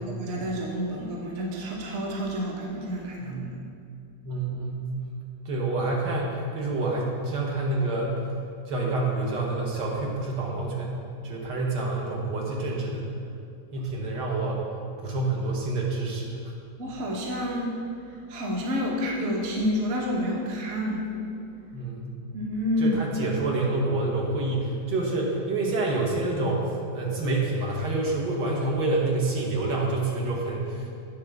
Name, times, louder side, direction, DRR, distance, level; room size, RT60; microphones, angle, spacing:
voice 1, 0.0-3.6 16.8-17.7 18.3-21.2 22.3-23.0, left 1 dB, 45° right, -2 dB, 1.1 m, -29 dB
voice 2, 4.2-4.8 5.5-8.2 8.7-11.0 11.2-13.1 13.7-14.6 15.0-16.4 21.7-22.1 22.8-30.9, right 2 dB, 75° right, -2 dB, 1.8 m, -27 dB
8.6 x 3.6 x 6.4 m, 2.4 s
omnidirectional pair, 1.9 m